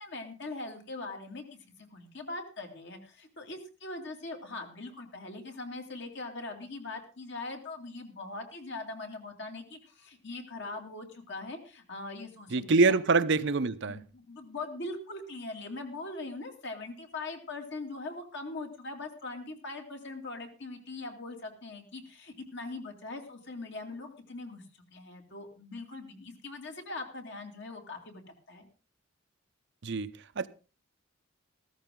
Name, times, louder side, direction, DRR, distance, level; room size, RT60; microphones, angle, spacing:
voice 1, 0.0-13.0 13.9-24.6 24.9-28.2 28.5-28.7, left 2 dB, 55° left, 2.6 m, -41 dB
voice 2, 12.5-14.0 29.8-30.1 30.4-30.5, right 3 dB, 60° right, 0.7 m, -25 dB
15.0 x 13.5 x 3.8 m
head